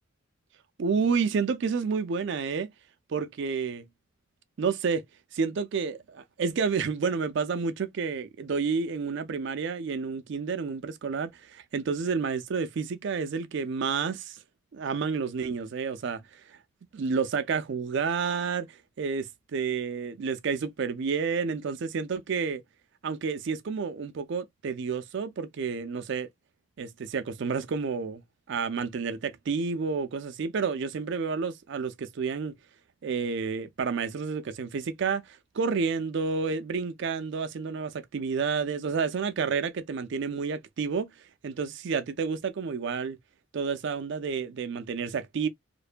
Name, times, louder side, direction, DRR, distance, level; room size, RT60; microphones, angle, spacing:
voice 1, 0.8-2.7 3.1-3.9 4.6-5.0 5.3-14.4 14.7-16.6 16.9-22.6 23.0-26.3 26.8-28.2 28.5-32.5 33.0-41.1 41.4-43.2 43.5-45.5, right 5 dB, 55° right, 0.4 m, -30 dB
2.6 x 2.1 x 2.4 m
head